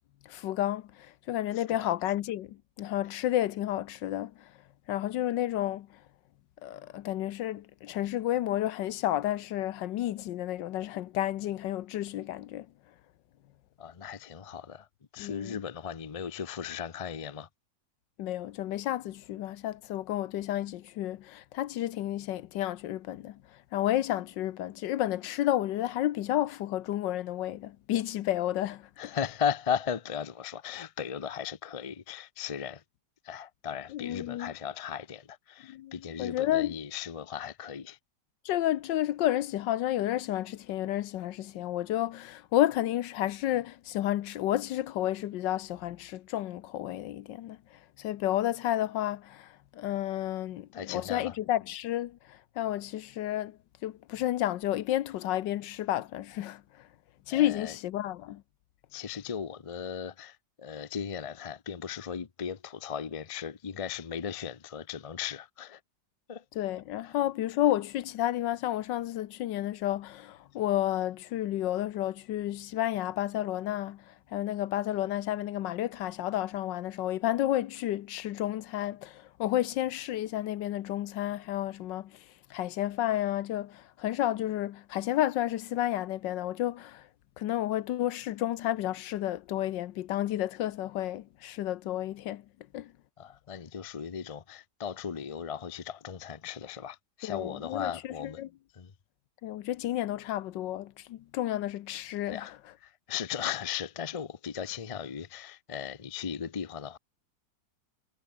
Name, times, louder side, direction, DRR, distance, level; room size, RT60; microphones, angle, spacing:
voice 1, 0.3-4.3 4.9-6.0 6.6-12.7 15.2-15.6 18.2-23.4 23.7-29.2 33.9-34.5 35.7-36.8 38.4-47.6 48.0-56.9 57.3-58.4 66.5-82.2 82.5-87.1 87.4-92.4 92.7-92.9 97.2-98.5 99.4-102.6, left 13 dB, 80° left, 1.4 m, -31 dB
voice 2, 13.8-14.9 15.1-17.5 29.0-32.8 33.2-38.0 50.7-51.3 57.3-57.7 58.9-65.8 66.3-66.4 67.0-67.2 93.2-98.4 98.7-98.9 102.3-102.5 102.8-107.0, left 7 dB, 40° left, 0.5 m, -37 dB
omnidirectional pair, 2.0 m